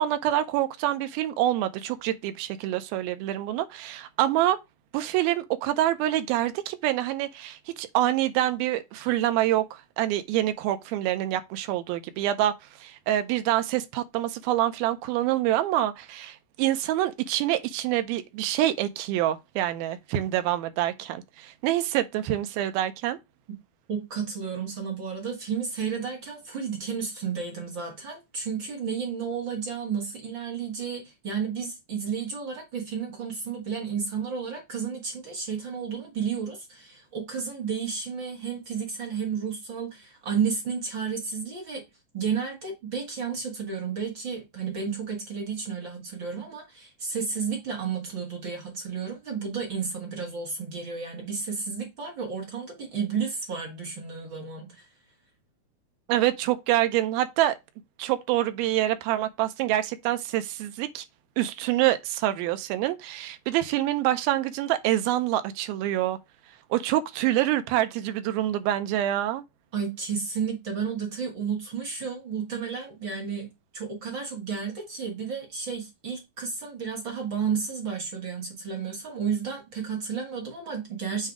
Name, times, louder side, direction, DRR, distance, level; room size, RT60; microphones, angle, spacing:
voice 1, 0.0-4.6 4.9-23.2 56.1-57.6 58.0-61.1 61.4-66.2 66.7-69.4, right 13 dB, 80° right, 2.4 m, -26 dB
voice 2, 23.9-41.8 42.1-54.9 69.7-73.5 73.7-81.3, right 6 dB, 50° right, 1.5 m, -32 dB
7.4 x 2.7 x 4.7 m
omnidirectional pair, 4.4 m